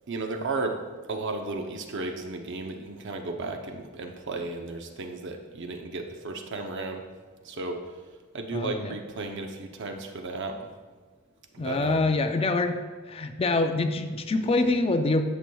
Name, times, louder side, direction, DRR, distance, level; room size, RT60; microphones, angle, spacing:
voice 1, 0.1-0.8 1.1-7.0 7.4-7.8 8.3-10.7 11.5-12.1 14.4-14.7, right 3 dB, 60° right, 4 dB, 0.7 m, -34 dB
voice 2, 8.5-8.9 11.6-12.8 13.1-15.2, left 2 dB, 30° left, 7 dB, 0.4 m, -25 dB
9.9 x 6.0 x 2.3 m, 1.4 s
head